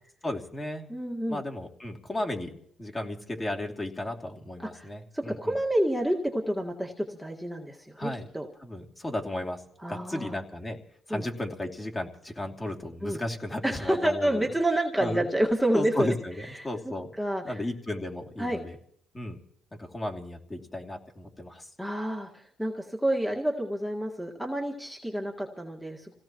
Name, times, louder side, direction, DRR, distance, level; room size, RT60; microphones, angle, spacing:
voice 1, 0.2-0.9 1.3-5.6 8.0-8.3 8.6-9.6 9.9-10.8 11.1-14.5 15.0-15.3 15.7-17.1 17.4-18.8 19.1-19.4 19.8-21.7, left 1 dB, 20° left, 1 dB, 2.9 m, -34 dB
voice 2, 0.9-1.4 4.6-8.5 9.8-10.4 11.1-11.3 13.0-13.2 13.6-16.1 16.4-17.6 18.4-18.6 21.8-26.1, right 1 dB, ahead, -2 dB, 1.9 m, -29 dB
27.5 x 17.0 x 3.1 m, 0.65 s
cardioid pair, 90°, 0 cm